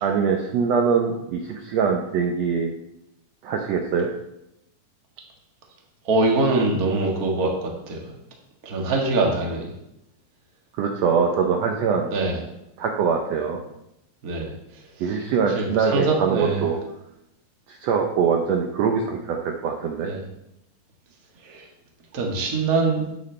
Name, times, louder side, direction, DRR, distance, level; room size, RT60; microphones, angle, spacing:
voice 1, 0.0-2.7 3.4-4.1 10.8-12.1 12.8-13.6 15.0-16.8 17.7-20.1, right 6 dB, 80° right, 2 dB, 1.5 m, -23 dB
voice 2, 6.0-8.0 8.6-9.7 12.1-12.4 14.2-14.5 15.5-16.6 20.0-20.2 21.4-21.6 22.1-23.1, right 3 dB, 40° right, 0 dB, 1.3 m, -23 dB
10.5 x 8.1 x 3.3 m, 0.84 s
omnidirectional pair, 4.0 m